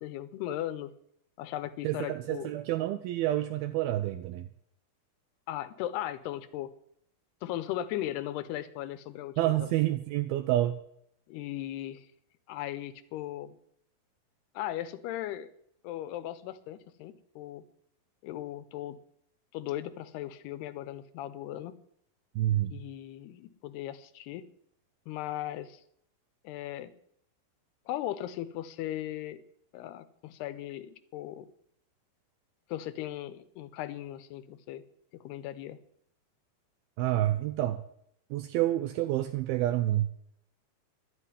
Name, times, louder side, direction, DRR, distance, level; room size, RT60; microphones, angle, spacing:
voice 1, 0.0-0.9 1.4-2.5 5.5-6.7 7.4-9.7 11.3-12.1 12.5-13.6 14.5-15.5 15.8-17.6 18.2-19.0 19.5-21.8 22.6-24.5 25.1-25.8 26.4-26.9 27.9-29.4 29.7-31.5 32.7-34.8 35.2-35.8, left 13 dB, 90° left, 13 dB, 2.9 m, -37 dB
voice 2, 1.8-4.5 9.4-10.8 22.4-22.8 37.0-37.8 38.3-40.1, right 14 dB, 80° right, 8 dB, 2.5 m, -28 dB
11.5 x 7.7 x 9.9 m, 0.70 s
omnidirectional pair, 4.6 m